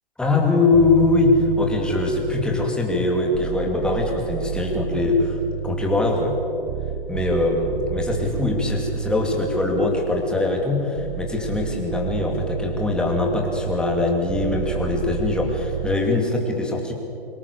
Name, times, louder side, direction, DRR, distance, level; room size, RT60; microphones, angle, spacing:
voice 1, 0.2-5.4 5.6-6.4 7.1-16.9, left 2 dB, 5° left, 0 dB, 2.6 m, -22 dB
sound 1, 0.7-2.9 3.3-10.5 11.0-16.0, right 10 dB, 40° right, 0.7 m, -31 dB
23.5 x 18.5 x 6.9 m, 2.8 s
hypercardioid pair, 145°, 29 cm